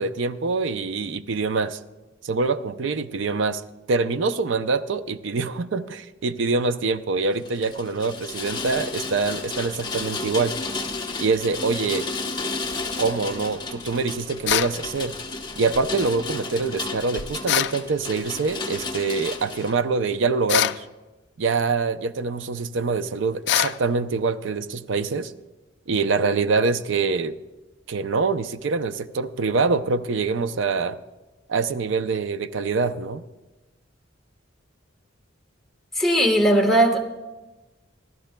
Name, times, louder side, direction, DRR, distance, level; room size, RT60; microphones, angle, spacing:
voice 1, 0.0-1.8 2.2-3.6 3.9-10.5 11.2-12.1 13.0-15.1 15.6-20.8 21.4-25.3 25.9-27.3 27.9-31.0 31.5-33.2, right 4 dB, 75° right, 12 dB, 0.5 m, -25 dB
Rain, 7.4-19.7, left 3 dB, 25° left, 0.9 m, -32 dB
sound 1, 14.5-14.8 17.5-17.8 20.5-20.8 23.5-23.8, left 12 dB, 65° left, 0.3 m, -22 dB
voice 2, 36.0-37.0, right 1 dB, ahead, 0 dB, 1.2 m, -18 dB
27.0 x 12.5 x 2.2 m, 1.1 s
head